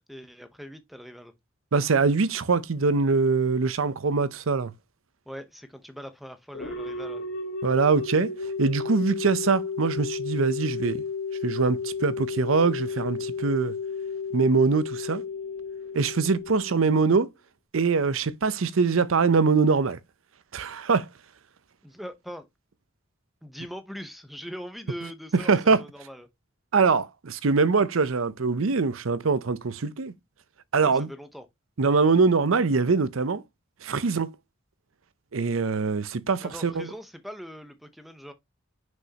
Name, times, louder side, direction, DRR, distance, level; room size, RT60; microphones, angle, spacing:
voice 1, 0.0-1.3 5.3-7.3 21.8-22.5 23.4-26.3 30.8-31.5 36.4-38.3, equal, ahead, 0.8 m, -41 dB
voice 2, 1.7-4.7 7.6-11.0 11.4-13.7 14.3-15.2 15.9-17.3 17.7-20.0 20.5-21.1 25.3-25.8 26.7-30.1 30.7-31.1 31.8-33.4 33.8-34.4 35.3-36.9, right 4 dB, 85° right, 0.6 m, -23 dB
sound 1, 6.5-17.2, left 5 dB, 85° left, 2.8 m, -33 dB
6.3 x 5.4 x 2.9 m
head